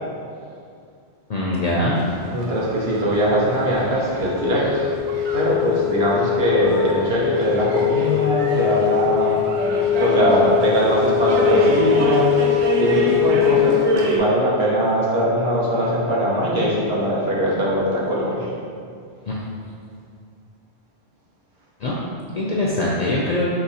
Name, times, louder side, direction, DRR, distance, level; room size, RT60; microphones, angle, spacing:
voice 1, 1.3-2.0 19.3-19.4 21.8-21.9 22.3-23.5, left 1 dB, 55° left, -5 dB, 0.4 m, -22 dB
sound 1, 2.0-14.2, right 1 dB, 90° right, 0.9 m, -28 dB
voice 2, 2.3-4.9 5.3-9.5 9.9-18.5, equal, 65° right, -5 dB, 1.1 m, -21 dB
Wind instrument woodwind instrument, 4.2-14.0, left 12 dB, 80° left, 0.9 m, -22 dB
5.2 x 3.0 x 2.7 m, 2.3 s
omnidirectional pair, 1.1 m